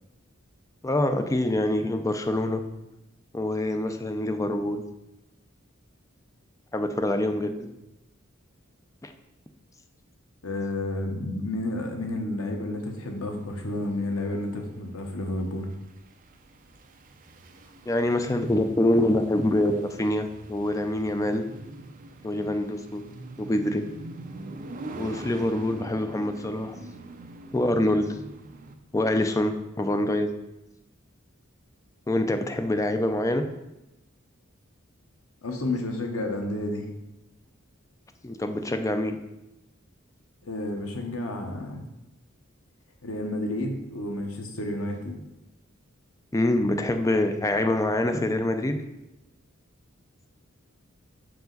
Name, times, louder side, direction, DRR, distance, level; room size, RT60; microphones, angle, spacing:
voice 1, 0.8-2.6 3.3-4.8 6.7-7.8 9.0-9.1 17.9-21.4 22.2-23.0 23.4-23.8 25.0-26.8 27.5-28.1 28.9-30.3 32.1-33.5 38.2-39.2 46.3-48.8, left 1 dB, 15° left, 7 dB, 0.4 m, -25 dB
voice 2, 10.4-15.7 35.4-36.9 40.4-41.9 43.0-45.2, left 1 dB, 90° left, 3 dB, 1.0 m, -31 dB
sound 1, 12.9-28.8, right 2 dB, 40° right, 0.5 m, -44 dB
6.0 x 4.8 x 3.9 m, 0.93 s
head